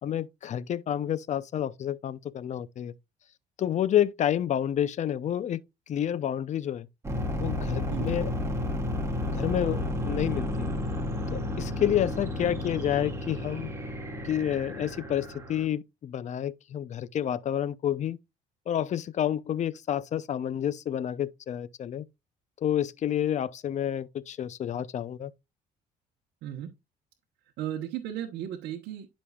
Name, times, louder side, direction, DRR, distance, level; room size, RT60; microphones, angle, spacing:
voice 1, 0.0-2.9 3.6-5.6 5.9-6.9 7.4-8.3 9.3-10.7 11.3-13.7 14.2-18.2 18.7-22.0 22.6-25.3, left 10 dB, 45° left, 0.6 m, -29 dB
sound 1, 7.0-15.7, left 1 dB, 15° right, 2.1 m, -32 dB
voice 2, 27.6-29.1, right 11 dB, 80° right, 1.0 m, -35 dB
11.5 x 5.3 x 2.4 m
cardioid pair, 110°, 17 cm